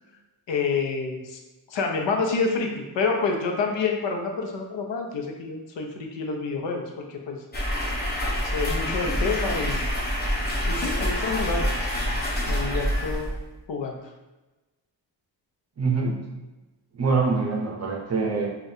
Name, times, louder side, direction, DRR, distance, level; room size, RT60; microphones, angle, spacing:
voice 1, 0.5-1.4 1.7-7.4 8.4-9.8 10.7-11.7 12.5-13.3 13.7-14.0, left 4 dB, 80° left, 2 dB, 0.7 m, -28 dB
sound 1, 7.5-13.6, equal, 20° left, 0.7 m, -26 dB
voice 2, 15.8-16.2 16.9-18.6, right 4 dB, 35° right, -1 dB, 0.7 m, -24 dB
4.8 x 2.4 x 2.7 m, 1.1 s
wide cardioid pair, 150°, 43 cm